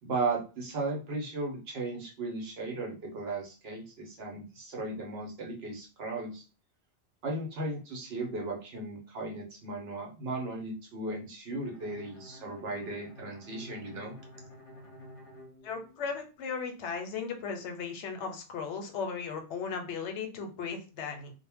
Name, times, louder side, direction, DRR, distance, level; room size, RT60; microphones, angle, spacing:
voice 1, 0.0-6.4 7.2-14.1, right 3 dB, 65° right, 0 dB, 0.9 m, -36 dB
Bowed string instrument, 11.6-16.4, left 1 dB, 40° left, 0.6 m, -51 dB
voice 2, 15.6-21.3, left 5 dB, 85° left, 5 dB, 0.9 m, -36 dB
2.1 x 2.0 x 3.3 m, 0.34 s
omnidirectional pair, 1.2 m